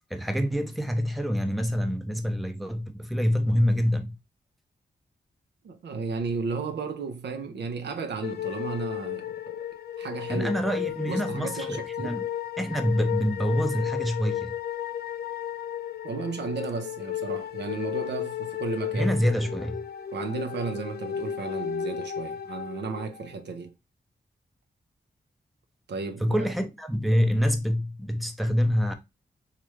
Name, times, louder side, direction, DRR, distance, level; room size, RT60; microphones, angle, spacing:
voice 1, 0.1-4.2 10.3-12.3 12.6-14.5 18.9-19.8 26.2-28.9, equal, ahead, 0.6 m, -26 dB
voice 2, 5.6-9.6 10.0-10.5 11.1-12.2 16.0-19.1 20.1-23.7 25.9-26.4, right 4 dB, 85° right, 0.6 m, -34 dB
sound 1, 8.2-23.4, left 10 dB, 65° left, 0.4 m, -34 dB
3.1 x 2.4 x 3.1 m
cardioid pair, 55°, 17 cm